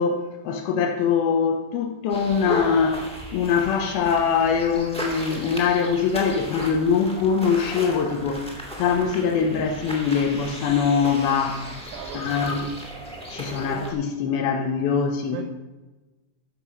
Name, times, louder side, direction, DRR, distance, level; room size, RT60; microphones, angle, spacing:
voice 1, 0.0-8.5 8.8-11.7 12.1-12.7 13.3-15.4, left 6 dB, 75° left, 4 dB, 2.5 m, -23 dB
sound 1, 2.1-13.9, equal, 10° left, 0.4 m, -36 dB
voice 2, 11.4-12.7 15.3-15.4, right 7 dB, 70° right, 5 dB, 2.3 m, -39 dB
13.5 x 6.7 x 6.1 m, 1.1 s
omnidirectional pair, 5.1 m